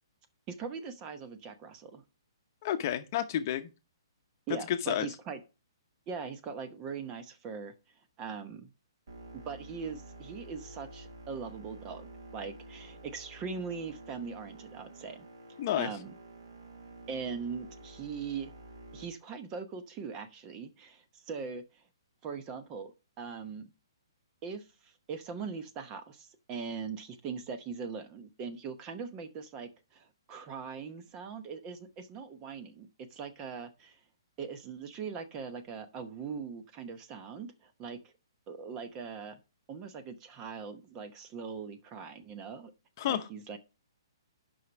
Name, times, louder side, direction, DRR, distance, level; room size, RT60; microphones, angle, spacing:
voice 1, 0.5-2.0 4.5-5.4 6.1-7.7 8.2-8.7 9.5-15.3 15.8-16.1 17.1-18.5 18.9-21.8 22.2-23.7 24.4-34.0 34.4-38.1 38.5-39.4 39.7-42.7 43.1-43.6, right 5 dB, 25° right, 0.9 m, -41 dB
voice 2, 2.6-3.7 4.7-5.1 15.6-15.9 43.0-43.2, left 11 dB, 40° left, 0.8 m, -30 dB
sound 1, 9.1-19.1, right 2 dB, 65° right, 4.2 m, -50 dB
6.3 x 5.6 x 6.1 m
hypercardioid pair, 150°, 3 cm